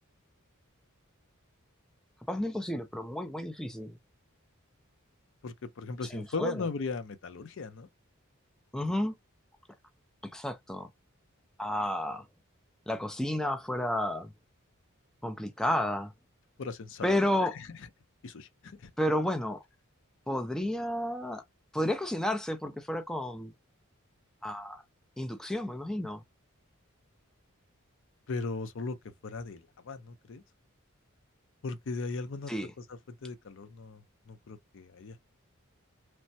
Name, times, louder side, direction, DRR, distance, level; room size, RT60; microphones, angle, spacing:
voice 1, 2.3-4.0 6.1-6.6 8.7-9.2 10.2-10.9 11.6-12.3 12.9-14.3 15.2-16.1 17.0-17.6 19.0-19.6 20.3-21.4 21.7-23.5 24.4-24.8 25.2-26.2 32.5-32.7, left 1 dB, 5° left, 0.3 m, -31 dB
voice 2, 5.4-7.9 16.6-17.2 18.2-18.9 28.3-29.0 29.2-30.4 31.6-32.5 32.9-35.2, left 4 dB, 60° left, 0.5 m, -38 dB
3.2 x 2.1 x 2.6 m
head